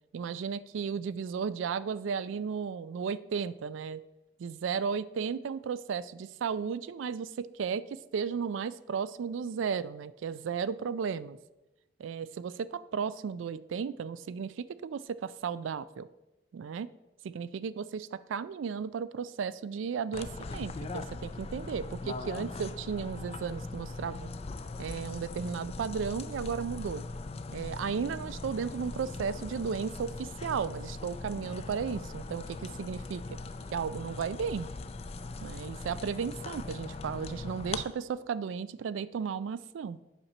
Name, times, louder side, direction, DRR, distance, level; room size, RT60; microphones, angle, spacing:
voice 1, 0.1-4.0 4.4-11.4 12.0-16.1 16.5-16.9 17.2-24.3 24.8-27.0 27.5-33.4 33.7-34.7 35.4-40.0, right 6 dB, 90° right, 16 dB, 0.3 m, -34 dB
sound 1, 20.1-37.8, left 3 dB, 30° left, 0.3 m, -40 dB
8.0 x 4.3 x 5.9 m, 1.0 s
head